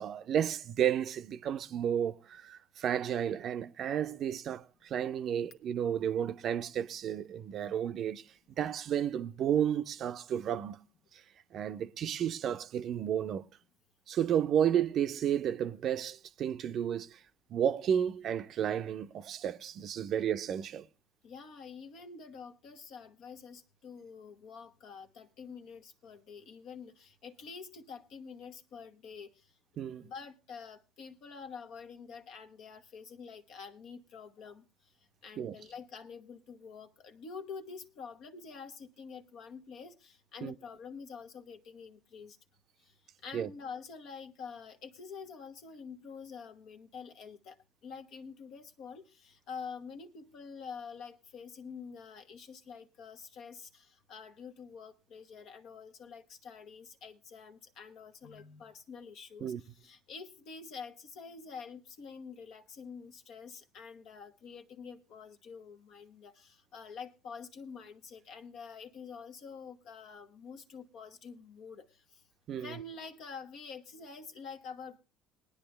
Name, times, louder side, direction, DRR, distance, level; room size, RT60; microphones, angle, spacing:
voice 1, 0.0-8.3 8.6-10.8 11.1-11.2 11.5-13.5 14.1-17.2 17.5-20.9 29.8-30.1 35.4-35.5 40.4-40.6 43.3-43.5 59.4-59.6 72.5-72.8, right 9 dB, 55° right, 0.5 m, -32 dB
voice 2, 21.2-29.3 30.0-34.6 35.2-42.4 43.2-47.6 47.8-59.5 59.8-71.9 72.6-75.0, left 5 dB, 65° left, 1.2 m, -47 dB
19.0 x 9.9 x 3.3 m
hypercardioid pair, 70°, 0 cm